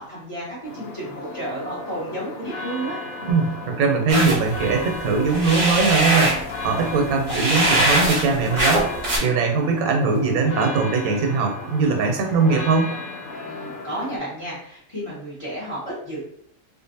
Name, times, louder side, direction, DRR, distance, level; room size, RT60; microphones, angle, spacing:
voice 1, 0.0-3.0 13.4-16.2, right 1 dB, 25° left, -7 dB, 0.8 m, -32 dB
sound 1, 0.6-14.2, left 3 dB, 80° left, 1.0 m, -35 dB
voice 2, 3.2-8.9 9.2-12.9, right 4 dB, 80° right, 3 dB, 1.1 m, -21 dB
sound 2, 4.1-9.2, right 1 dB, 40° right, 0.5 m, -22 dB
2.5 x 2.5 x 2.6 m, 0.66 s
omnidirectional pair, 1.5 m